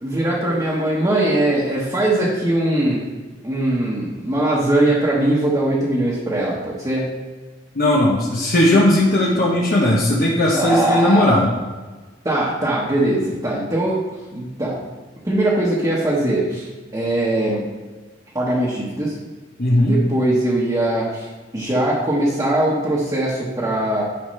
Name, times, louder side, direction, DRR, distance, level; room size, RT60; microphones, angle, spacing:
voice 1, 0.0-3.0 3.4-7.1 10.5-11.3 12.2-14.0 14.3-14.7 15.2-17.6 18.3-19.2 19.8-24.0, right 1 dB, 20° right, -7 dB, 1.2 m, -21 dB
voice 2, 7.7-11.5 19.6-19.9, left 1 dB, 55° left, -3 dB, 0.9 m, -17 dB
10.5 x 4.9 x 3.2 m, 1.3 s
head